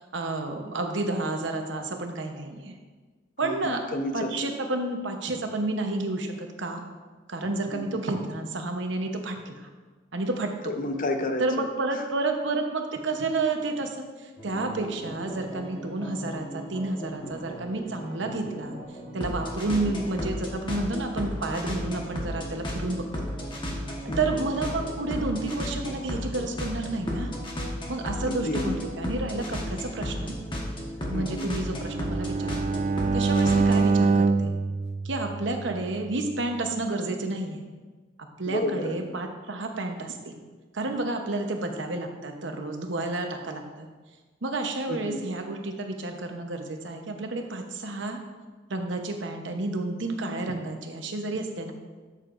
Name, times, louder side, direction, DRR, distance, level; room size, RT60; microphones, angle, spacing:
voice 1, 0.1-2.8 3.4-3.8 4.1-6.8 7.3-9.7 10.1-10.5 11.4-18.8 19.1-23.0 23.8-27.4 27.9-30.3 31.1-32.6 33.1-34.5 35.0-37.6 38.4-40.4 40.7-43.9 44.4-48.2 48.7-51.7, right 2 dB, 70° right, 4 dB, 1.0 m, -30 dB
voice 2, 3.4-4.3 7.7-7.8 10.6-11.4 24.1-24.4 28.2-28.8 31.1-31.5 38.5-39.0 44.9-45.2, left 1 dB, 45° left, 5 dB, 0.8 m, -30 dB
sound 1, 14.4-34.0, equal, 25° left, 1.3 m, -34 dB
Bowed string instrument, 31.7-35.9, right 4 dB, 40° right, 0.3 m, -25 dB
13.0 x 6.7 x 2.6 m, 1.4 s
head